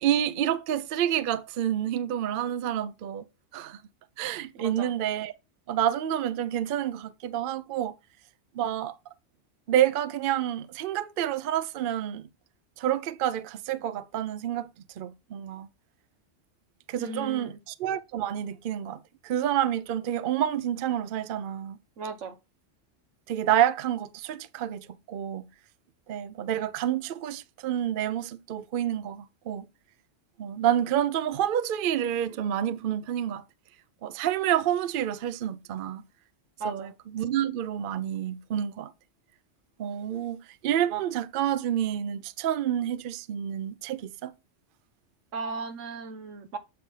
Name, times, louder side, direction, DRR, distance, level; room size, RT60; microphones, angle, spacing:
voice 1, 0.0-3.2 3.5-3.8 4.2-5.3 5.7-7.9 8.5-9.0 9.7-12.2 12.8-14.7 15.0-15.7 16.9-21.8 23.3-25.5 26.1-29.6 30.4-33.4 34.0-36.0 36.6-38.9 39.8-40.4 40.6-44.3, right 10 dB, 60° right, 0.6 m, -28 dB
voice 2, 4.5-4.9 17.0-17.6 22.0-22.4 36.6-36.9 45.3-46.6, right 3 dB, 85° right, 1.4 m, -36 dB
7.7 x 3.3 x 5.4 m
omnidirectional pair, 1.3 m